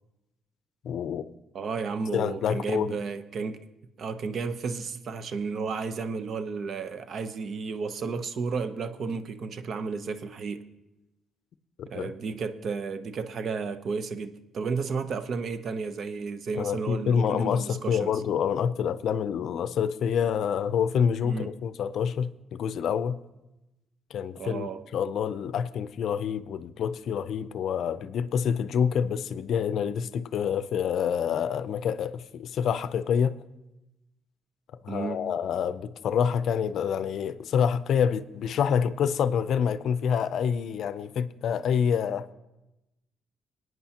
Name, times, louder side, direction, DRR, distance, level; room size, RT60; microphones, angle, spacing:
voice 1, 0.8-1.3 2.1-3.0 11.8-12.1 16.6-23.2 24.1-33.4 34.8-42.3, left 7 dB, 70° left, 0.5 m, -27 dB
voice 2, 1.5-3.6 4.0-10.7 11.9-18.1 21.2-21.5 24.4-24.8 34.9-35.3, right 5 dB, 60° right, 0.7 m, -33 dB
22.5 x 9.2 x 2.9 m
cardioid pair, 90°, 0 cm